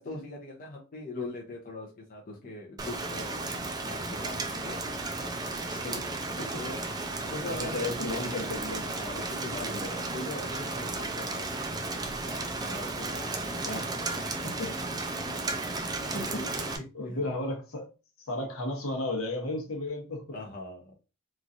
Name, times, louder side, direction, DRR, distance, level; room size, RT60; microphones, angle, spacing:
voice 1, 0.0-3.4 3.9-4.9 6.6-7.0 7.3-7.9 8.9-11.6 12.6-13.8 15.7-15.9 16.3-17.2 20.3-20.9, left 2 dB, 40° left, 0.6 m, -41 dB
Rain, 2.8-16.8, right 2 dB, 20° right, 0.4 m, -34 dB
voice 2, 5.7-6.6 7.4-8.8 9.6-9.8 13.7-13.9 14.4-14.7 15.8-16.6 16.9-17.9 18.3-20.2, left 2 dB, 70° left, 0.9 m, -34 dB
3.0 x 2.4 x 2.5 m
head